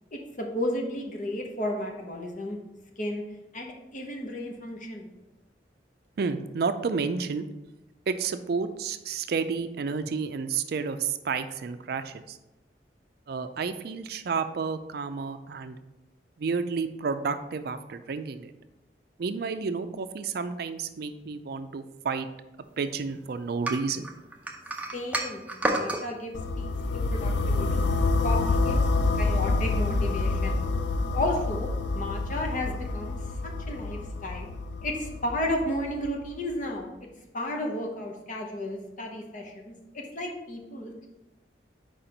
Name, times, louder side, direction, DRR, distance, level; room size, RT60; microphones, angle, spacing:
voice 1, 0.1-2.6 3.0-3.2 3.5-5.1 24.9-27.8 28.2-28.8 29.1-30.6 31.1-33.2 33.7-34.5 34.8-36.9 37.3-41.1, left 1 dB, 45° left, 1 dB, 1.0 m, -33 dB
voice 2, 6.2-7.5 8.1-12.4 13.3-15.8 16.4-18.5 19.2-22.3 22.8-24.1, right 5 dB, 60° right, 10 dB, 0.4 m, -31 dB
sound 1, 23.6-26.0, right 1 dB, 10° right, 0.6 m, -30 dB
sound 2, 26.3-36.3, left 3 dB, 75° left, 0.4 m, -27 dB
4.8 x 4.4 x 5.1 m, 0.99 s
head